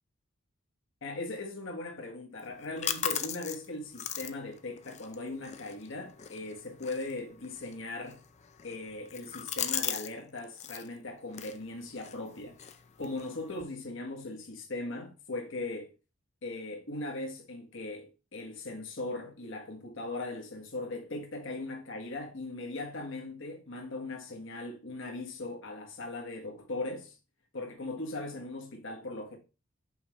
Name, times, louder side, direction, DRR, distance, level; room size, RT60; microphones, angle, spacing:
voice 1, 1.0-8.2 8.6-12.6 13.0-15.9 16.4-27.2 27.5-29.4, left 2 dB, 65° left, 1.4 m, -39 dB
sound 1, 2.4-10.1 10.4-10.9 11.3-13.6, left 9 dB, 35° left, 0.5 m, -39 dB
5.7 x 5.5 x 3.1 m
head